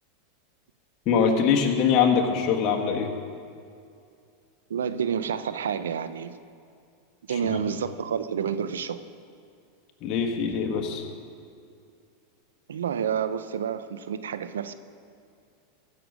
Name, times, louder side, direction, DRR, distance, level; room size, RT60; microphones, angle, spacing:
voice 1, 1.0-3.1 7.4-7.6 10.0-11.1, left 6 dB, 45° left, 1 dB, 1.7 m, -23 dB
voice 2, 4.7-6.4 7.3-9.0 12.7-14.7, right 7 dB, 90° right, 12 dB, 0.6 m, -29 dB
16.0 x 6.8 x 6.2 m, 2.4 s
hypercardioid pair, 110°, 0 cm